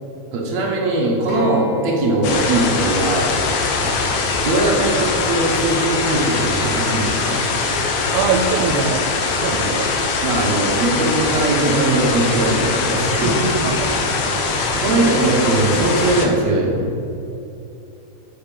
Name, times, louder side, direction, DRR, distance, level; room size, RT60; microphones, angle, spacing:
voice 1, 0.3-3.3 4.4-7.4 9.5-9.7 10.2-13.7 14.7-16.9, right 2 dB, 60° right, -2 dB, 2.0 m, -20 dB
Acoustic guitar, 1.3-5.5 6.4-6.5, left 3 dB, 35° left, 1.8 m, -34 dB
sound 1, 2.2-16.3, left 4 dB, 75° left, 2.0 m, -21 dB
voice 2, 8.1-9.0 9.4-9.9 13.6-13.7 14.0-14.5, right 6 dB, 85° right, 3 dB, 2.8 m, -23 dB
8.0 x 6.8 x 5.3 m, 2.8 s
omnidirectional pair, 4.9 m